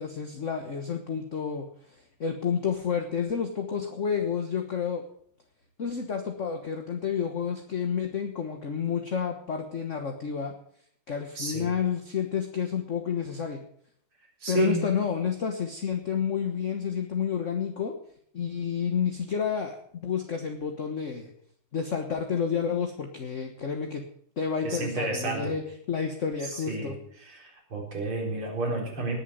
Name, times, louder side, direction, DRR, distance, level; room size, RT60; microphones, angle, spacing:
voice 1, 0.0-1.7 2.2-5.0 5.8-10.5 11.1-13.6 14.5-17.9 18.3-21.3 21.7-24.0 24.4-25.6 25.9-26.9, left 7 dB, 40° left, 5 dB, 1.4 m, -30 dB
voice 2, 11.4-11.7 14.4-14.9 24.6-25.5 26.4-26.9 27.2-29.1, right 2 dB, 85° right, -1 dB, 5.2 m, -31 dB
19.0 x 7.4 x 7.7 m, 0.64 s
omnidirectional pair, 2.3 m